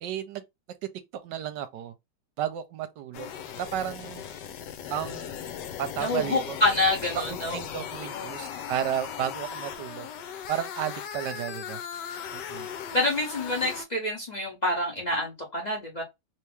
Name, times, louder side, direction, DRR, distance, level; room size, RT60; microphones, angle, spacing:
voice 1, 0.0-0.4 1.2-1.9 2.4-4.2 4.9-5.3 5.8-6.6 7.1-10.1 10.5-11.8 12.3-12.7, right 10 dB, 80° right, 1.2 m, -33 dB
sound 1, 3.1-13.8, left 8 dB, 75° left, 1.2 m, -38 dB
voice 2, 6.0-7.6 8.1-8.5 12.9-16.0, left 2 dB, 30° left, 0.9 m, -27 dB
3.1 x 2.9 x 3.3 m
omnidirectional pair, 1.9 m